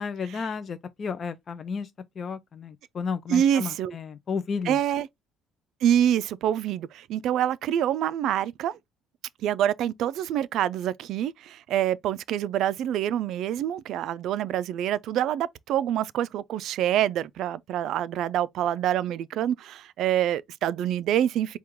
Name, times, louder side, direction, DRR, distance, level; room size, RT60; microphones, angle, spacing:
voice 1, 0.0-1.9 2.2-4.8, left 5 dB, 30° left, 0.4 m, -32 dB
voice 2, 3.3-3.9 4.6-5.1 5.8-8.8 9.4-21.6, right 10 dB, 60° right, 0.3 m, -26 dB
4.5 x 2.3 x 3.5 m
cardioid pair, 155°, 0 cm